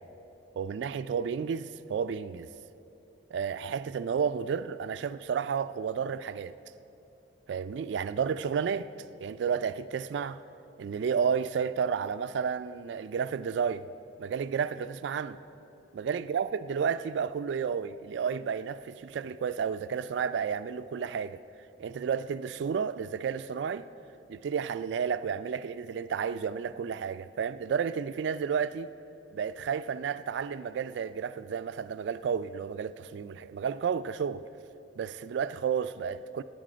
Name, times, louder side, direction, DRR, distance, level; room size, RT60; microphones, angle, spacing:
voice 1, 0.6-2.5 3.3-6.5 7.5-8.9 9.2-10.4 10.8-13.9 14.2-15.4 15.9-21.4 21.8-23.9 24.3-28.9 29.3-34.5 35.0-36.4, right 6 dB, 75° right, 0.3 m, -31 dB
18.5 x 8.4 x 5.0 m
head